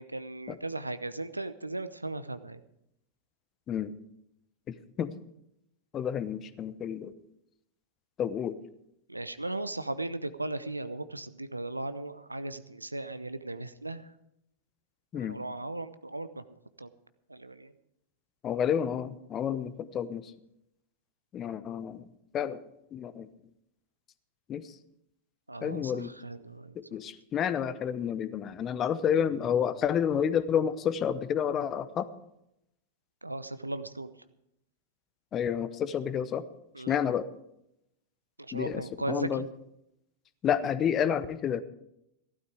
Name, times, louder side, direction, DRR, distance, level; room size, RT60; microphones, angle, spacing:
voice 1, 0.0-2.6 9.1-14.1 15.1-16.4 16.8-16.9 17.3-17.7 25.5-26.7 33.2-34.1 36.7-37.0 38.5-39.3, right 2 dB, 85° right, 13 dB, 0.7 m, -37 dB
voice 2, 5.9-7.1 8.2-8.6 15.1-15.4 18.4-20.3 21.3-22.1 22.3-22.6 22.9-23.3 24.5-24.7 25.6-26.1 26.8-32.1 35.3-36.4 36.9-37.3 38.5-39.5 40.4-41.6, left 8 dB, 30° left, 14 dB, 0.9 m, -30 dB
15.0 x 12.5 x 4.9 m, 0.80 s
figure-of-eight pair, 90°, 0 cm